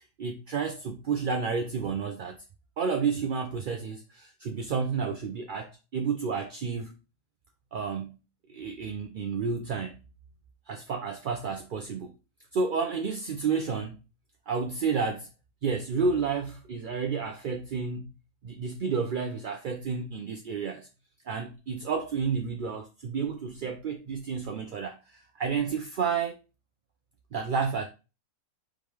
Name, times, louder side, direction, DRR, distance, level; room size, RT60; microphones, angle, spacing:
voice 1, 0.0-2.4 2.8-6.9 7.7-8.2 8.5-10.0 10.7-12.1 12.5-14.0 14.5-15.3 15.6-18.1 18.4-20.9 21.3-26.4 27.3-27.8, right 5 dB, 60° right, 0.5 m, -31 dB
4.9 x 3.1 x 3.4 m
omnidirectional pair, 1.4 m